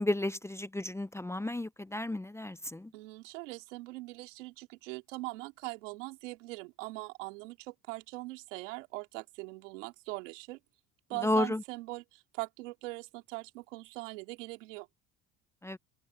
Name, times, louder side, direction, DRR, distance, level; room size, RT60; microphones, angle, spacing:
voice 1, 0.0-2.9 11.2-11.6 15.6-15.8, left 1 dB, 5° left, 0.7 m, -32 dB
voice 2, 2.9-10.6 11.1-14.9, right 23 dB, 90° right, 2.9 m, -41 dB
supercardioid pair, 90°, 36 cm